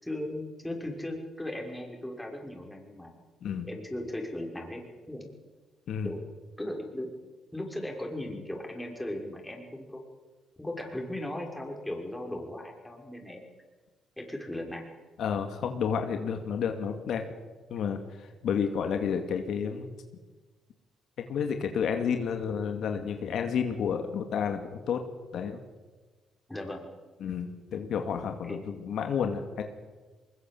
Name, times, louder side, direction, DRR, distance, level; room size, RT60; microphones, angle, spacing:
voice 1, 0.0-3.1 3.6-4.8 5.1-5.3 6.0-6.2 6.6-7.1 7.5-10.0 10.6-13.4 14.2-14.9 26.5-26.9 28.4-28.7, left 1 dB, 10° left, 1 dB, 5.9 m, -37 dB
voice 2, 15.2-17.2 17.7-18.0 18.4-19.9 21.2-25.0 25.3-25.6 27.2-29.6, left 7 dB, 70° left, 5 dB, 2.3 m, -30 dB
23.0 x 21.5 x 7.8 m, 1.3 s
cardioid pair, 90°, 0 cm